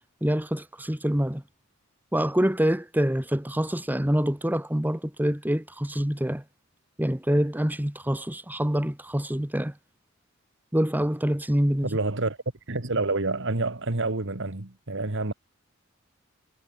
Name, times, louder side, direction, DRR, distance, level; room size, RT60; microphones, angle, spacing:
voice 1, 0.2-1.4 2.1-6.4 7.0-9.7 10.7-11.9, equal, 10° right, 1.4 m, -26 dB
voice 2, 11.8-12.4 12.7-15.3, right 2 dB, 60° right, 2.0 m, -28 dB
head